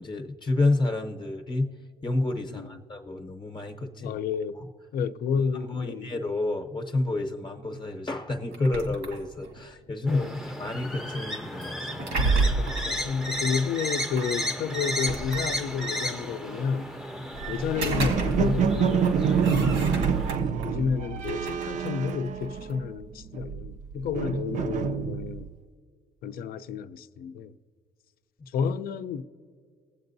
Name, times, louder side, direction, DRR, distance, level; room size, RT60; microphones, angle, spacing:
voice 1, 0.0-1.7 2.0-4.2 4.6-4.7 5.7-12.3 20.4-20.6, left 2 dB, 30° left, 0.8 m, -29 dB
voice 2, 4.0-4.6 4.9-6.1 10.1-10.4 10.7-10.8 12.5-16.9 17.5-20.2 20.6-25.5 26.2-27.6 28.5-29.2, left 6 dB, 60° left, 0.5 m, -31 dB
sound 1, 8.5-9.6 11.6-12.9 14.2-14.3 14.8-15.9 17.5-18.7 19.0-20.7 21.2-22.8, right 3 dB, 90° right, 1.6 m, -31 dB
sound 2, 10.1-20.4, equal, ahead, 0.6 m, -34 dB
sound 3, 17.4-23.0 23.3-25.5, right 7 dB, 45° right, 0.5 m, -27 dB
20.0 x 7.8 x 2.6 m
cardioid pair, 110°, 17 cm